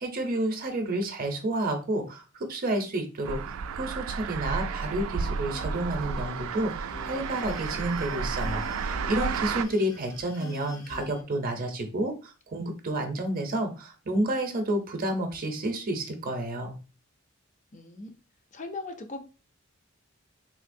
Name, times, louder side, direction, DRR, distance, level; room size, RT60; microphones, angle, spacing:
voice 1, 0.0-16.8, right 1 dB, 45° right, 5 dB, 0.6 m, -30 dB
sound 1, 3.2-9.6, right 5 dB, 90° right, 0.3 m, -32 dB
sound 2, 5.2-11.2, left 4 dB, 80° left, 0.8 m, -45 dB
voice 2, 17.7-18.1 18.5-19.2, left 3 dB, 35° left, 6 dB, 0.5 m, -38 dB
3.7 x 2.7 x 2.6 m, 0.33 s
head